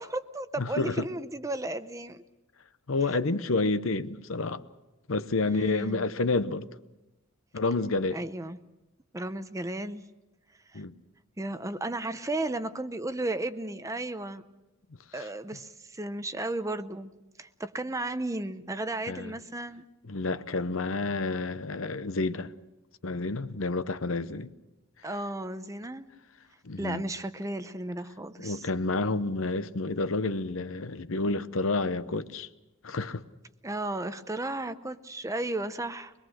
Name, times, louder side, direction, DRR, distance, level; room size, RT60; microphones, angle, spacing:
voice 1, 0.0-2.2 3.1-3.2 5.5-6.1 8.1-8.6 9.1-10.0 10.7-10.8 11.4-14.4 15.1-17.1 17.4-19.8 25.0-26.1 26.8-28.7 33.6-36.1, right 2 dB, 15° right, 0.7 m, -34 dB
voice 2, 0.6-1.1 2.9-4.6 5.1-6.7 7.5-8.2 10.7-11.0 19.1-19.3 20.1-22.5 23.0-24.5 26.6-27.0 28.4-32.5 32.8-33.2, left 3 dB, 65° left, 0.8 m, -29 dB
24.0 x 21.5 x 6.4 m
head